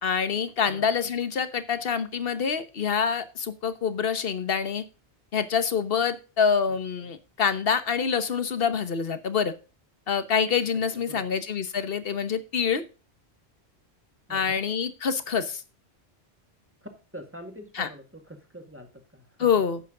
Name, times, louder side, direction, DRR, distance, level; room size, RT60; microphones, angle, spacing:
voice 1, 0.0-4.8 5.3-9.5 10.1-12.8 14.3-15.6 17.8-17.9 19.4-19.8, left 6 dB, 60° left, 12 dB, 1.2 m, -26 dB
voice 2, 11.0-11.3 14.3-14.6 16.8-19.5, equal, 10° right, 5 dB, 1.8 m, -45 dB
11.0 x 8.3 x 3.8 m, 0.33 s
omnidirectional pair, 1.1 m